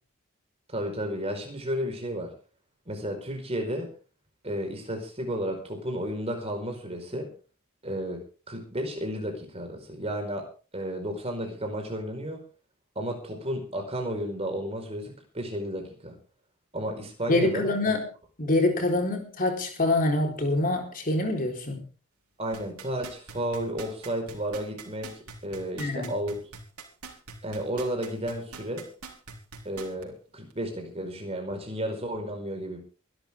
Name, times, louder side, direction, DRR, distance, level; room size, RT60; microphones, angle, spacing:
voice 1, 0.7-2.3 2.9-3.9 4.4-7.3 7.8-10.5 10.7-12.4 12.9-16.1 16.7-17.9 22.4-26.5 27.4-28.9 29.6-32.8, equal, 25° right, 4.9 m, -33 dB
voice 2, 17.3-18.0 18.4-21.8 25.8-26.1, left 2 dB, 40° left, 4.2 m, -25 dB
sound 1, 22.5-30.0 30.5-30.6, right 5 dB, 85° right, 4.1 m, -43 dB
24.0 x 12.0 x 3.7 m
head